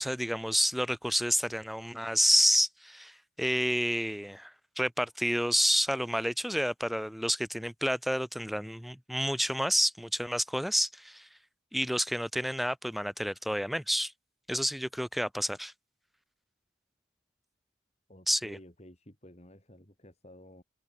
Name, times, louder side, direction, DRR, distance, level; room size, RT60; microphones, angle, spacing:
voice 1, 0.0-11.3 11.7-14.1 14.5-15.7 18.3-18.6, equal, ahead, 1.9 m, -29 dB
voice 2, 18.1-20.6, left 1 dB, 35° left, 5.5 m, -53 dB
head